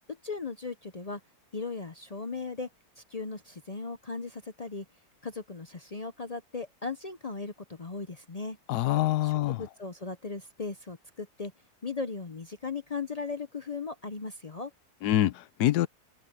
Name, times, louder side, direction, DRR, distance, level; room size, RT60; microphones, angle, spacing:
voice 1, 0.2-1.2 1.5-2.7 3.1-4.8 5.2-8.6 9.2-11.5 11.8-14.7, left 4 dB, 45° left, 0.5 m, -37 dB
voice 2, 8.7-9.6 15.0-15.9, left 14 dB, 80° left, 1.2 m, -25 dB
omnidirectional pair, 1.7 m